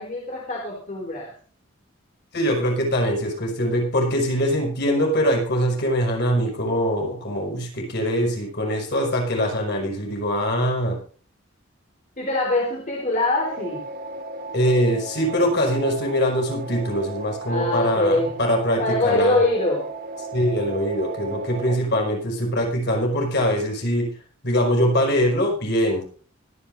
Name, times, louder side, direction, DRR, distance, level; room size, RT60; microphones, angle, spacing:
voice 1, 0.0-1.3 12.2-13.8 17.5-18.3 18.8-19.9, left 2 dB, 40° left, -2 dB, 3.8 m, -23 dB
voice 2, 2.3-11.0 14.5-19.4 20.3-24.1 24.4-26.0, equal, 55° left, 1 dB, 5.5 m, -23 dB
sound 1, 13.4-21.8, right 3 dB, 45° right, 2.0 m, -35 dB
24.5 x 10.0 x 2.7 m, 0.40 s
head